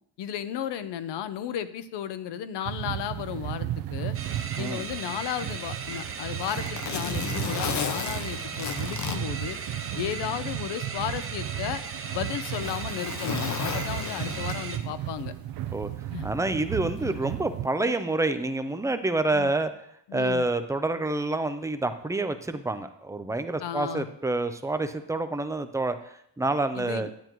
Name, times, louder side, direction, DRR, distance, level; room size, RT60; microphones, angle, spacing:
voice 1, 0.2-4.2 4.6-9.6 9.9-11.8 12.1-15.3 16.1-16.3 17.0-17.2 17.9-18.0 19.3-19.5 20.1-20.4 23.6-24.1 26.7-27.1, left 10 dB, 75° left, 12 dB, 0.7 m, -34 dB
sound 1, 2.7-17.7, right 13 dB, 60° right, 0.6 m, -35 dB
sound 2, 4.1-14.8, right 5 dB, 30° right, 0.8 m, -37 dB
Zipper (clothing), 5.7-10.2 10.6-10.7 11.5-14.9 16.1-16.3, left 7 dB, 45° left, 0.7 m, -34 dB
voice 2, 16.2-19.7 20.1-27.1, right 2 dB, 10° right, 9 dB, 0.3 m, -28 dB
10.0 x 9.1 x 3.0 m, 0.70 s
cardioid pair, 160°, 41 cm